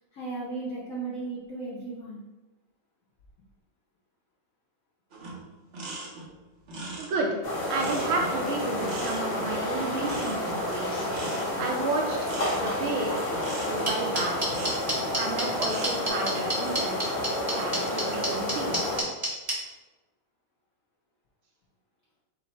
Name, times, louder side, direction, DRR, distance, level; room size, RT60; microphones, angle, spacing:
voice 1, 0.1-2.2, right 3 dB, 70° left, -6 dB, 0.7 m, -35 dB
sound 1, 5.1-15.1 15.5-16.1, right 2 dB, 60° right, 0.7 m, -40 dB
voice 2, 7.0-7.4 7.7-11.1 11.6-13.2 13.7-14.5 15.1-17.2 17.5-18.8, right 3 dB, 75° right, 1 dB, 1.4 m, -32 dB
sound 2, 7.4-19.0, left 1 dB, 35° left, 0.7 m, -30 dB
sound 3, 13.9-19.5, right 1 dB, 20° right, 0.8 m, -28 dB
4.7 x 2.1 x 4.1 m, 1.1 s
omnidirectional pair, 2.3 m